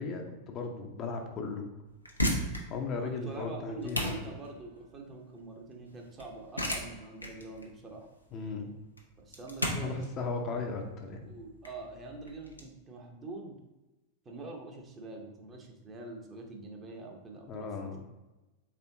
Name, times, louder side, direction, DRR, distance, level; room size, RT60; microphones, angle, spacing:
voice 1, 0.0-1.7 2.7-4.2 8.3-8.7 9.8-11.3 17.5-18.0, left 4 dB, 30° left, 2 dB, 0.6 m, -36 dB
sound 1, 1.9-12.6, equal, 85° left, 0.7 m, -36 dB
voice 2, 3.0-8.1 9.2-9.9 11.3-13.6 14.2-18.0, right 3 dB, 25° right, 1 dB, 0.8 m, -45 dB
4.3 x 3.3 x 2.7 m, 1.1 s
figure-of-eight pair, 90°, 0 cm